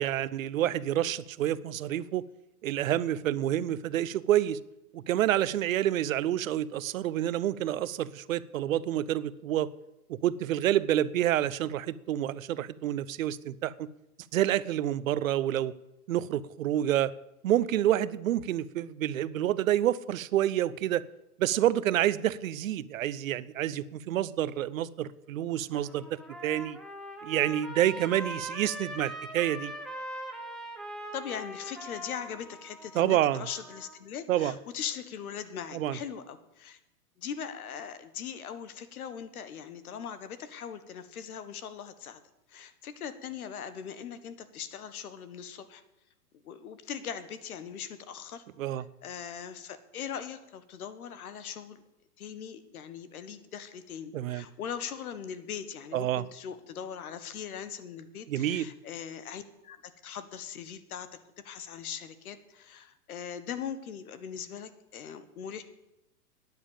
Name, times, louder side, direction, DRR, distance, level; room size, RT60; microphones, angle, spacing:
voice 1, 0.0-2.2 2.6-4.6 4.9-9.7 10.1-13.9 14.3-15.7 16.1-17.1 17.4-21.0 21.4-26.8 27.2-29.7 32.9-33.4 34.3-34.5 35.7-36.0 48.6-48.8 54.1-54.4 55.9-56.2 58.3-58.7, right 12 dB, 60° right, 18 dB, 0.7 m, -28 dB
Trumpet, 25.6-34.0, right 1 dB, ahead, 1.1 m, -42 dB
voice 2, 31.1-36.8 37.2-42.2 42.5-45.8 46.4-48.4 48.7-51.8 52.2-61.1 61.4-65.6, left 8 dB, 65° left, 12 dB, 1.7 m, -40 dB
10.0 x 9.6 x 8.8 m, 0.89 s
hypercardioid pair, 140°, 46 cm